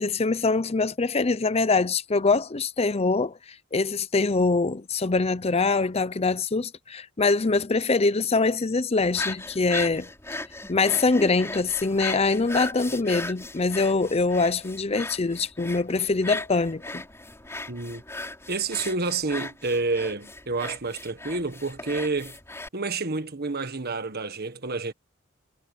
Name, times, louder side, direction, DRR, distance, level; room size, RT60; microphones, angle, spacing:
voice 1, 0.0-3.3 3.7-10.1 10.7-17.0, left 3 dB, 30° left, 0.7 m, -24 dB
sound 1, 9.0-22.7, left 2 dB, 15° left, 4.4 m, -37 dB
voice 2, 17.7-18.0 18.5-22.4 22.7-24.9, right 3 dB, 50° right, 1.6 m, -29 dB
head